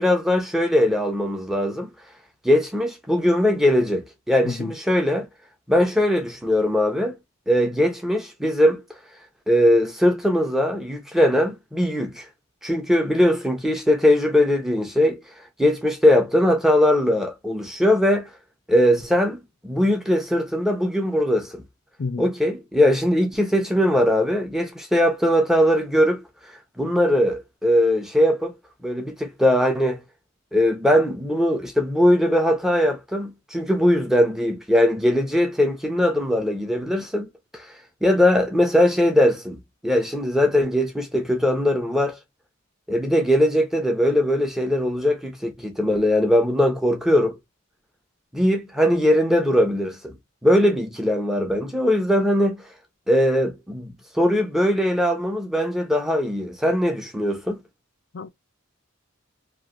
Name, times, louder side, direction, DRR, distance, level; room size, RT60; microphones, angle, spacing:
voice 1, 0.0-1.9 2.4-5.3 5.7-7.2 7.5-8.8 9.5-12.3 12.6-15.2 15.6-18.3 18.7-21.6 22.2-26.2 26.8-28.6 28.8-30.0 30.5-37.7 38.0-42.2 42.9-47.4 48.3-50.2 50.4-52.6 53.1-57.6, left 1 dB, ahead, 0.7 m, -20 dB
voice 2, 4.4-4.7 22.0-22.3 58.1-58.3, left 4 dB, 55° left, 0.5 m, -29 dB
3.0 x 2.6 x 2.5 m
head